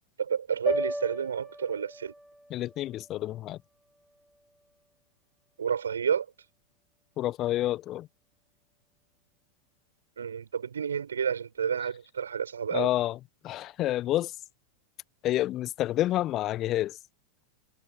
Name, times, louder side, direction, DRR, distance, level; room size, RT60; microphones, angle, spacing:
voice 1, 0.2-2.1 5.6-6.3 10.2-12.9, right 7 dB, 70° right, 5.1 m, -30 dB
sound 1, 0.7-4.9, equal, ahead, 3.4 m, -37 dB
voice 2, 2.5-3.6 7.2-8.1 12.7-13.2 13.4-14.3 15.2-17.0, left 14 dB, 35° left, 1.3 m, -28 dB
figure-of-eight pair, 90°, 0 cm